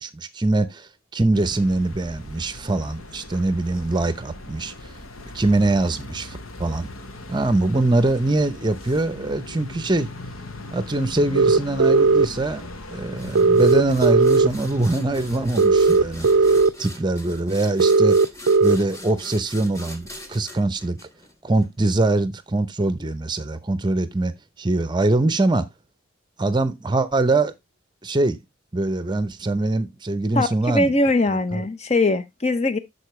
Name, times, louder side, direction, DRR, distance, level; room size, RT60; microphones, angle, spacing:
voice 1, 0.0-4.9 5.3-6.9 7.3-10.1 10.7-12.6 12.9-18.2 18.6-21.0 21.4-24.3 24.6-25.7 26.4-27.5 28.0-28.4 28.7-30.9 31.5-31.6, right 2 dB, 20° right, 0.7 m, -23 dB
sound 1, 1.3-16.7, left 2 dB, 80° left, 1.2 m, -39 dB
sound 2, 11.3-12.3 13.3-14.5 15.6-16.7 17.8-18.8, right 3 dB, 65° right, 0.4 m, -16 dB
sound 3, 13.2-21.7, left 1 dB, 15° left, 1.3 m, -41 dB
voice 2, 30.3-32.8, left 2 dB, 30° left, 0.8 m, -21 dB
11.5 x 4.4 x 3.1 m
head